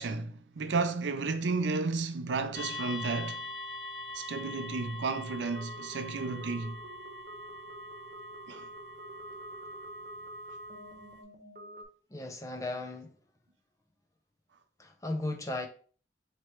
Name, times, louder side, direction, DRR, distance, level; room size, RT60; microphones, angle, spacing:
voice 1, 0.0-3.4 4.1-6.8 8.5-8.7, right 4 dB, 80° right, 0.5 m, -32 dB
sound 1, 2.5-11.2, left 2 dB, 70° left, 1.0 m, -44 dB
sound 2, 5.4-11.8, right 1 dB, 45° right, 1.0 m, -47 dB
voice 2, 12.1-13.1 14.8-15.7, left 2 dB, 20° left, 0.5 m, -36 dB
3.1 x 3.0 x 4.4 m
head